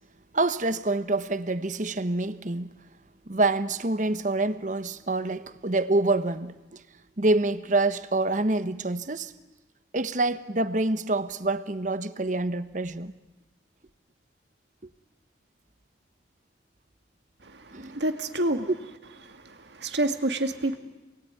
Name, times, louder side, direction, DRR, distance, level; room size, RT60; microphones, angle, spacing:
voice 1, 0.3-2.7 3.3-6.8 7.2-9.3 9.9-13.1 17.7-18.0, right 2 dB, 45° right, 1.1 m, -26 dB
voice 2, 17.4-18.7 19.2-20.8, right 1 dB, 70° right, 2.2 m, -29 dB
28.0 x 21.5 x 9.5 m
head